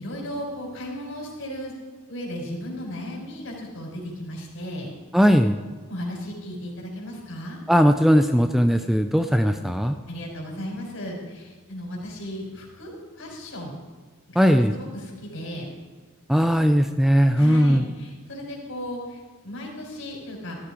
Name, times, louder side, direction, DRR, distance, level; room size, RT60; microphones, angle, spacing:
voice 1, 0.0-1.7 2.1-4.9 5.9-7.6 10.1-13.7 14.3-15.7 17.4-20.6, equal, 60° left, 0 dB, 4.6 m, -35 dB
voice 2, 5.1-5.6 7.7-10.0 14.4-14.8 16.3-17.8, equal, ahead, 7 dB, 0.4 m, -18 dB
14.5 x 13.5 x 4.9 m, 1.4 s
head